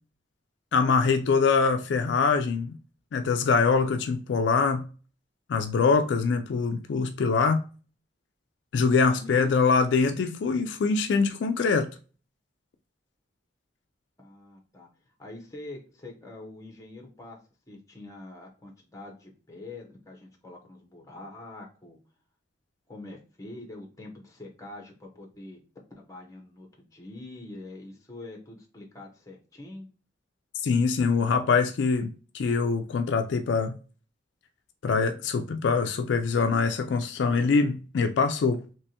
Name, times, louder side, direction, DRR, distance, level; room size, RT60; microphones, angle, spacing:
voice 1, 0.7-2.7 3.1-4.9 5.5-7.6 8.7-11.9 30.6-33.8 34.8-38.6, left 4 dB, 70° left, 0.3 m, -24 dB
voice 2, 9.1-9.7 14.2-14.9 15.2-17.4 17.7-22.0 22.9-25.6 25.9-29.9, left 2 dB, 20° left, 0.9 m, -44 dB
3.3 x 2.9 x 2.8 m
head